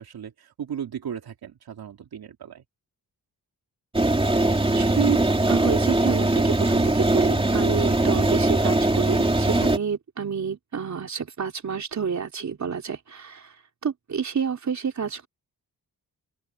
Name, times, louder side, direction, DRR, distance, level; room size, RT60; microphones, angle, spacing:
voice 1, 0.0-2.6 8.0-8.3, right 8 dB, 80° right, 2.6 m, -36 dB
sound 1, 3.9-9.8, right 2 dB, 15° right, 2.6 m, -21 dB
voice 2, 4.7-5.2 5.5-13.5 13.8-15.3, right 6 dB, 50° right, 3.7 m, -29 dB
open air
wide cardioid pair, 135°, 37 cm